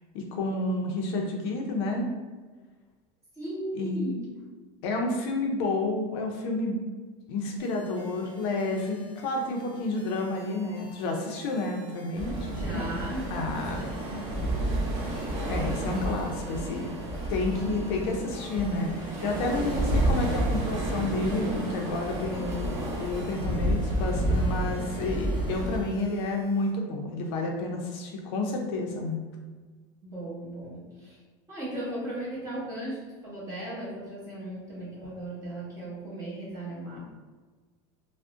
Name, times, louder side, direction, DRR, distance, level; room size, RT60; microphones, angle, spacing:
voice 1, 0.1-2.1 3.8-4.0 4.8-6.8 7.3-13.0 13.3-13.8 15.5-16.9 17.3-29.2, left 2 dB, 60° left, 1 dB, 0.5 m, -30 dB
voice 2, 3.3-4.4 12.5-14.8 30.0-31.2 31.5-37.0, right 1 dB, 20° right, -7 dB, 1.0 m, -37 dB
sound 1, 7.6-26.7, equal, 5° left, 1.2 m, -51 dB
sound 2, 12.2-25.8, right 1 dB, 50° right, 0.7 m, -30 dB
3.5 x 2.1 x 2.5 m, 1.4 s
supercardioid pair, 165°, 15 cm